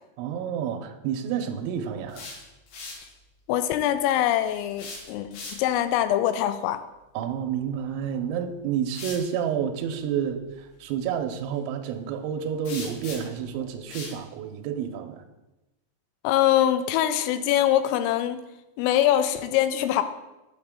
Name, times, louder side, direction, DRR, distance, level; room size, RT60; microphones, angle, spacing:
voice 1, 0.2-2.3 7.1-15.2, right 8 dB, 85° right, 5 dB, 2.8 m, -29 dB
sound 1, 1.9-3.1 4.7-5.9 7.9-8.1 8.9-9.3 12.7-13.4 13.9-14.2, left 3 dB, 70° left, 3.8 m, -40 dB
voice 2, 3.5-6.8 16.2-18.4 18.8-20.0, left 12 dB, 85° left, 11 dB, 3.1 m, -23 dB
8.3 x 8.1 x 3.6 m, 1.0 s
omnidirectional pair, 5.9 m